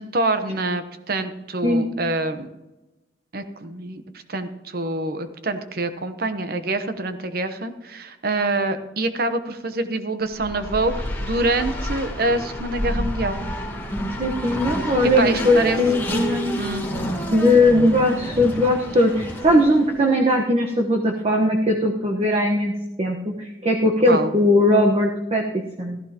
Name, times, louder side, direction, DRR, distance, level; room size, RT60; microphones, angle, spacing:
voice 1, 0.0-2.5 3.3-4.0 4.3-13.4 14.8-16.1 16.6-16.9 24.1-24.3, right 2 dB, 55° right, 9 dB, 1.0 m, -26 dB
Race car auto racing, 10.3-20.0, equal, 10° left, 2.6 m, -29 dB
voice 2, 14.2-16.6 17.3-26.0, left 1 dB, 35° right, 0 dB, 1.2 m, -19 dB
15.0 x 15.0 x 3.0 m, 1.0 s
head